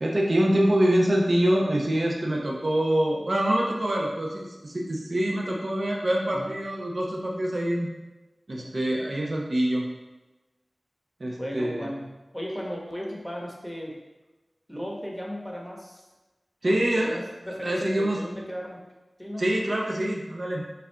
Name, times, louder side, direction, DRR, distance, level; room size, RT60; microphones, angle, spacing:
voice 1, 0.0-7.9 8.5-9.8 11.2-11.9 16.6-17.2 17.6-18.2 19.4-20.6, right 1 dB, 55° right, -2 dB, 0.7 m, -25 dB
voice 2, 11.4-14.0 14.7-16.0 16.6-18.8 19.2-19.5, equal, 5° left, -2 dB, 1.0 m, -36 dB
5.6 x 2.6 x 3.3 m, 1.1 s
wide cardioid pair, 70°, 0 cm